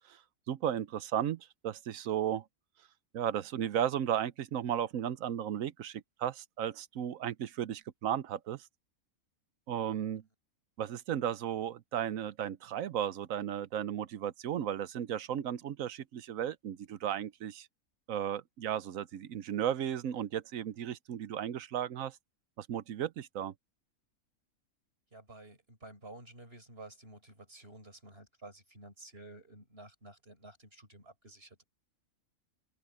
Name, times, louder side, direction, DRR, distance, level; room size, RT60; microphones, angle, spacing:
voice 1, 0.5-2.4 3.1-8.6 9.7-10.2 10.8-17.7 18.1-22.2 22.6-23.5, right 10 dB, 70° right, 1.1 m, -35 dB
voice 2, 25.1-31.6, right 2 dB, 40° right, 6.3 m, -52 dB
open air
omnidirectional pair, 1.6 m